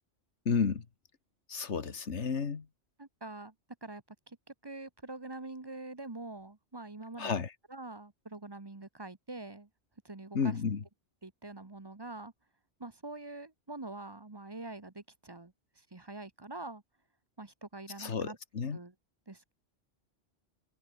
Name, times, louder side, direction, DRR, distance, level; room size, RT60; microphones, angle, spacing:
voice 1, 0.5-0.9 1.5-2.7 7.2-7.5 10.3-10.8 18.0-18.8, left 5 dB, 70° left, 1.9 m, -32 dB
voice 2, 3.0-3.5 3.8-4.4 4.6-7.4 7.7-9.7 10.0-10.6 11.2-12.3 12.8-15.5 15.9-16.8 17.4-18.4 18.7-18.9 19.3-19.5, right 2 dB, 20° right, 1.0 m, -45 dB
omnidirectional pair, 1.2 m